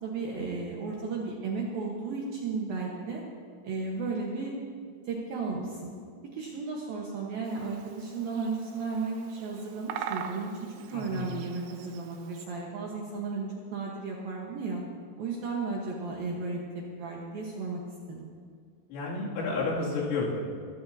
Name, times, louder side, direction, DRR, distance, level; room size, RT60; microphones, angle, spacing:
voice 1, 0.0-3.2 3.6-4.5 5.1-5.9 6.3-10.5 10.9-14.8 15.2-16.6 17.0-17.8 18.1-18.3, right 4 dB, 65° right, -2 dB, 2.4 m, -34 dB
Bird vocalization bird call bird song, 7.4-12.5, right 8 dB, 85° right, 3.3 m, -42 dB
voice 2, 10.9-11.3 18.9-20.5, left 3 dB, 80° left, -5 dB, 5.2 m, -31 dB
23.5 x 14.0 x 2.8 m, 2.1 s
omnidirectional pair, 5.8 m